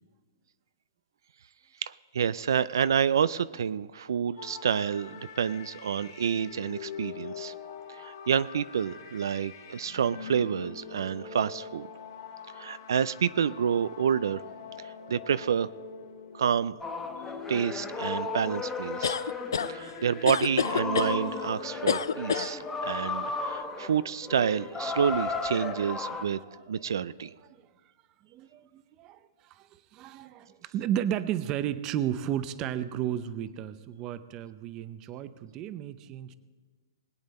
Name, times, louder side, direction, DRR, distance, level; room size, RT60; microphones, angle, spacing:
voice 1, 1.8-7.5 7.9-11.9 12.5-14.4 14.8-15.7 16.3-16.8 17.5-19.2 19.7-26.4 26.7-27.3, right 7 dB, 75° right, 16 dB, 0.4 m, -29 dB
sound 1, 4.4-23.6, left 7 dB, 55° left, 2.2 m, -44 dB
sound 2, 16.8-26.3, left 3 dB, 10° left, 0.9 m, -35 dB
sound 3, 19.0-19.7 20.3-21.1 21.9-22.5, left 7 dB, 90° left, 0.4 m, -27 dB
voice 2, 22.8-23.9 26.2-26.6 27.4-27.6 28.3-36.3, right 10 dB, 25° right, 13 dB, 0.6 m, -34 dB
21.0 x 8.8 x 4.2 m, 1.4 s
hypercardioid pair, 155°, 2 cm